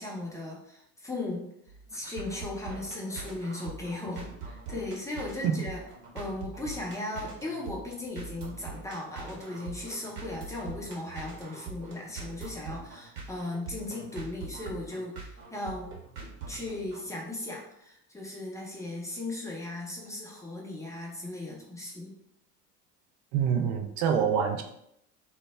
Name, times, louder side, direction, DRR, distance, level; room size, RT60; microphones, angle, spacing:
voice 1, 0.0-1.5 1.9-5.8 6.1-15.2 15.5-15.9 16.5-22.1, left 2 dB, 5° left, -3 dB, 0.6 m, -37 dB
sound 1, 1.7-17.1, right 4 dB, 55° right, 0.9 m, -43 dB
voice 2, 23.3-24.6, right 7 dB, 40° right, 4 dB, 0.4 m, -26 dB
2.1 x 2.0 x 3.4 m, 0.76 s
hypercardioid pair, 70°, 45 cm